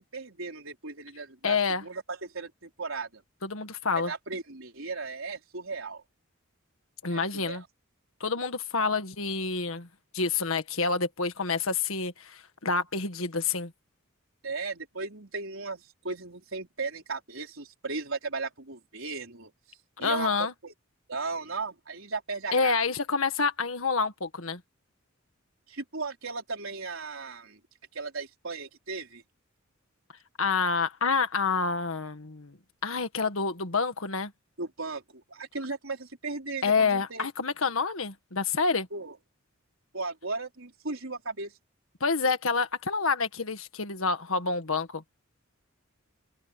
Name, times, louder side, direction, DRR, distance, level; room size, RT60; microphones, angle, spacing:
voice 1, 0.0-3.2 3.9-6.0 7.1-7.7 14.4-20.3 20.6-20.7 21.1-22.8 25.7-27.6 27.9-29.2 34.6-37.3 38.9-39.2 39.9-41.5, right 3 dB, 70° right, 4.4 m, -36 dB
voice 2, 1.4-1.8 3.4-4.1 7.0-7.6 8.2-9.9 10.1-13.7 20.0-20.5 22.5-24.6 30.4-32.6 32.8-34.3 36.6-38.9 42.0-45.0, left 4 dB, 75° left, 1.7 m, -28 dB
open air
head